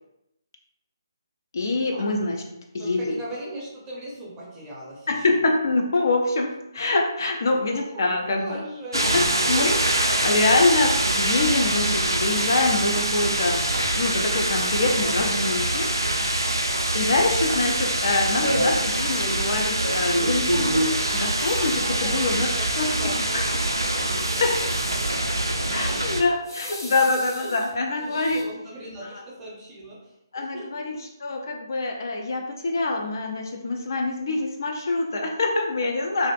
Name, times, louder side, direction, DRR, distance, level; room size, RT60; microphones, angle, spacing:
voice 1, 1.5-2.4 2.7-3.2 5.1-8.6 9.1-13.6 14.0-15.9 16.9-20.8 21.1-22.5 22.8-23.0 23.3-23.4 24.1-24.5 25.7-28.4 29.1-29.2 30.3-36.3, left 2 dB, 50° left, 2 dB, 0.4 m, -25 dB
voice 2, 2.8-5.3 7.7-10.3 20.8-26.7 27.4-27.6 28.1-31.0, right 1 dB, 15° right, -5 dB, 0.7 m, -39 dB
sound 1, 8.9-26.2, right 1 dB, 90° right, 0.3 m, -24 dB
sound 2, 11.6-17.6 17.9-20.4 20.6-28.4, left 1 dB, 70° left, 1.1 m, -44 dB
2.5 x 2.4 x 2.3 m, 0.86 s
figure-of-eight pair, 145°, 2 cm